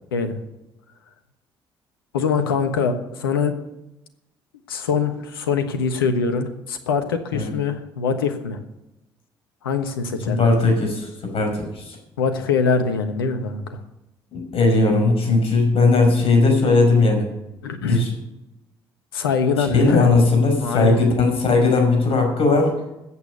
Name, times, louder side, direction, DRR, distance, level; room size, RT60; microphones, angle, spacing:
voice 1, 2.1-3.5 4.7-8.6 9.6-10.5 12.2-13.8 17.6-18.0 19.1-20.1 20.6-21.0, left 5 dB, 85° left, 8 dB, 1.2 m, -23 dB
voice 2, 10.3-12.0 14.3-17.3 17.8-18.1 19.6-22.7, left 3 dB, 55° left, 3 dB, 5.7 m, -18 dB
14.0 x 8.5 x 6.9 m, 0.92 s
hypercardioid pair, 45°, 12 cm